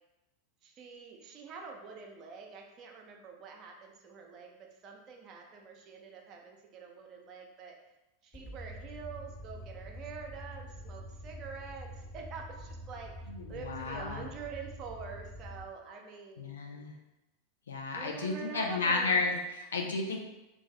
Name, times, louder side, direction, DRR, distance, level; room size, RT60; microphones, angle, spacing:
voice 1, 0.6-7.8 8.2-13.1 13.5-16.5 18.0-19.2, right 5 dB, 40° right, 1 dB, 0.5 m, -46 dB
sound 1, 8.3-15.6, equal, 25° left, 1.4 m, -46 dB
voice 2, 13.3-14.3 16.4-16.9 17.7-20.2, left 3 dB, 75° left, 1 dB, 0.5 m, -32 dB
2.5 x 2.4 x 3.2 m, 0.97 s
figure-of-eight pair, 85°, 0 cm